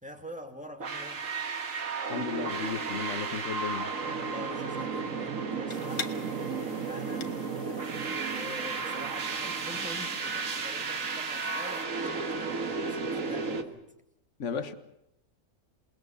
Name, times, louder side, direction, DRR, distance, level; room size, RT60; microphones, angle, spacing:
voice 1, 0.0-1.3 4.1-13.8, left 1 dB, 5° right, 2.4 m, -46 dB
sound 1, 0.8-13.6, right 4 dB, 65° right, 1.9 m, -33 dB
voice 2, 2.1-3.9 14.4-14.7, left 6 dB, 55° left, 1.6 m, -34 dB
sound 2, 5.7-11.9, left 5 dB, 80° left, 1.8 m, -46 dB
28.0 x 20.0 x 7.1 m
omnidirectional pair, 1.5 m